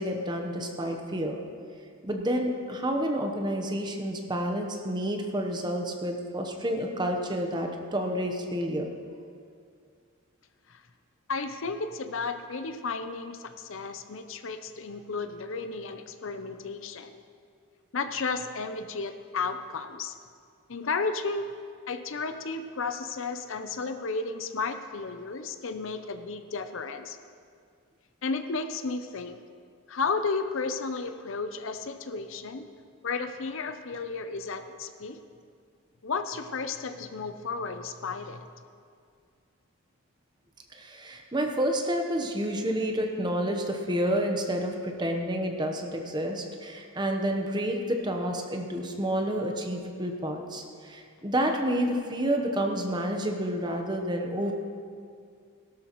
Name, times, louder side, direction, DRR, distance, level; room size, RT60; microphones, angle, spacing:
voice 1, 0.0-1.4 2.0-8.9 40.7-54.5, equal, 20° right, 3 dB, 0.9 m, -29 dB
voice 2, 11.3-17.1 17.9-20.2 20.7-21.5 21.9-27.2 28.2-29.4 29.9-32.7 33.0-35.2 36.0-38.5, left 4 dB, 60° left, 9 dB, 0.6 m, -33 dB
17.0 x 12.5 x 3.1 m, 2.2 s
head